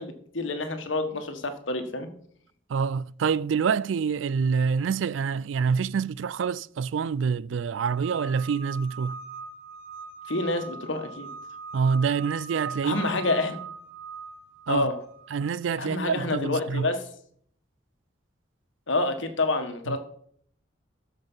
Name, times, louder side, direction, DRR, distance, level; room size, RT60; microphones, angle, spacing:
voice 1, 0.0-2.1 10.3-11.3 12.8-13.6 14.7-14.9 15.8-17.0 18.9-20.0, left 2 dB, 80° left, 1.5 m, -28 dB
voice 2, 2.7-9.2 11.7-13.0 14.7-14.9 15.3-16.9 19.9-20.0, right 6 dB, 75° right, 0.4 m, -26 dB
sound 1, 7.7-15.5, right 5 dB, 60° right, 1.5 m, -40 dB
13.0 x 5.3 x 5.5 m
head